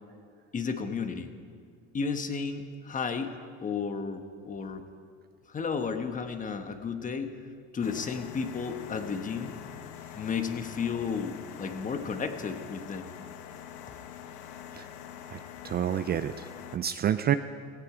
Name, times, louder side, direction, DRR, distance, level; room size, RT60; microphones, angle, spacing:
voice 1, 0.5-1.3 1.9-3.3 3.6-4.8 5.5-7.4 7.7-9.5 10.1-13.1, left 5 dB, 25° left, 7 dB, 1.2 m, -33 dB
sound 1, 7.8-16.8, left 10 dB, 75° left, 1.1 m, -45 dB
voice 2, 15.6-17.4, right 10 dB, 30° right, 11 dB, 0.4 m, -29 dB
17.5 x 15.0 x 4.9 m, 2.1 s
cardioid pair, 125°, 30 cm